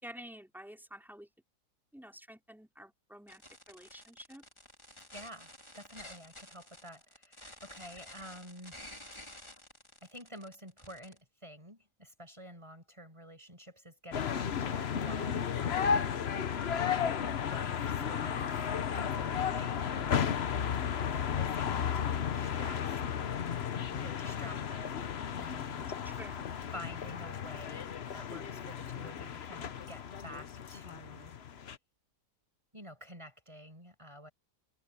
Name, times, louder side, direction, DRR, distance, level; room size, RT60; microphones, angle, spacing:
voice 1, 0.0-1.3 1.9-3.4 3.7-4.4 18.0-18.7 26.1-26.6, equal, ahead, 5.1 m, -50 dB
sound 1, 3.3-11.2, left 1 dB, 15° left, 4.6 m, -51 dB
voice 2, 5.1-8.8 10.0-16.0 16.9-18.5 18.9-20.5 21.0-23.0 23.9-25.1 25.4-26.0 26.7-31.3 32.7-34.3, equal, 15° right, 5.6 m, -50 dB
sound 2, 14.1-31.8, left 7 dB, 45° left, 1.0 m, -34 dB
omnidirectional pair, 1.7 m